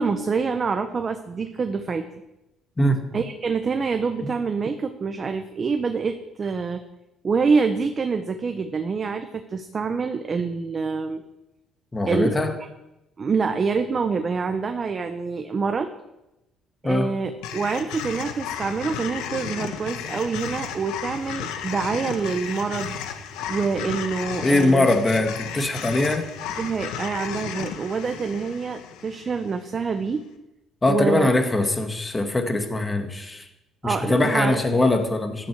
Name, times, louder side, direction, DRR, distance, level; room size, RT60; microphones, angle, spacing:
voice 1, 0.0-2.1 3.1-6.8 7.2-11.2 12.1-12.3 13.2-15.9 16.8-23.0 23.5-24.9 26.6-30.2 30.9-31.3 33.8-34.6, right 5 dB, 35° right, 7 dB, 0.9 m, -26 dB
voice 2, 11.9-12.5 16.8-17.1 24.4-26.3 30.8-33.5 33.8-35.5, left 2 dB, 20° left, 5 dB, 1.9 m, -22 dB
sound 1, 17.4-29.7, left 8 dB, 90° left, 1.4 m, -34 dB
14.0 x 11.0 x 4.8 m, 0.93 s
cardioid pair, 110°, 0 cm